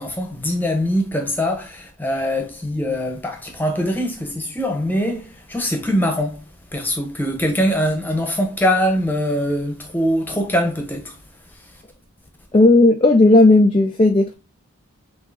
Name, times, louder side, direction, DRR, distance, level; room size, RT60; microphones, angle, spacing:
voice 1, 0.0-6.4 6.7-11.2, equal, 10° left, 0.9 m, -22 dB
voice 2, 12.5-14.4, left 2 dB, 25° left, 0.3 m, -13 dB
6.0 x 2.8 x 2.7 m
head